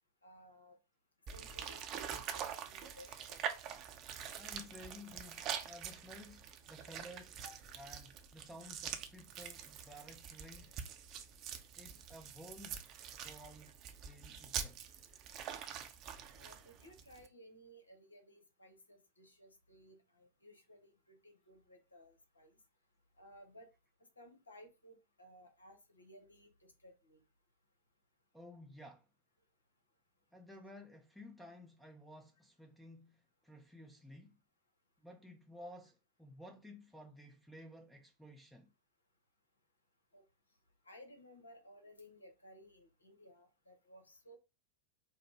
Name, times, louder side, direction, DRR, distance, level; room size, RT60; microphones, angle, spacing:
voice 1, 0.2-0.8 1.3-3.4 7.4-7.6 16.3-22.5 23.2-23.7 24.2-27.2 40.1-40.2 40.8-44.4, equal, 75° left, 1.1 m, -59 dB
sound 1, 1.3-17.3, right 8 dB, 35° right, 0.7 m, -45 dB
voice 2, 4.3-7.4 7.8-10.8 11.8-12.8 13.2-13.7 14.0-14.8 28.3-29.1 30.3-34.4 35.0-38.7, left 1 dB, ahead, 0.6 m, -54 dB
4.8 x 2.1 x 4.6 m
figure-of-eight pair, 90°, 0 cm